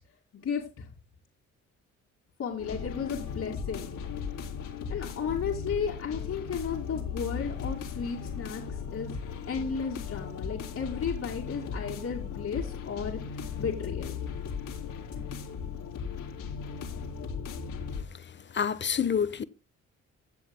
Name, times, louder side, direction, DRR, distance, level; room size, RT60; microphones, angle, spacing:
voice 1, 0.4-0.9 2.4-3.9 4.9-9.1 9.5-14.2, left 6 dB, 55° left, 2.5 m, -34 dB
sound 1, 2.6-18.0, left 6 dB, 80° left, 3.4 m, -37 dB
voice 2, 18.2-19.4, left 7 dB, 40° left, 1.0 m, -28 dB
16.5 x 7.9 x 2.2 m
cardioid pair, 90°, 30 cm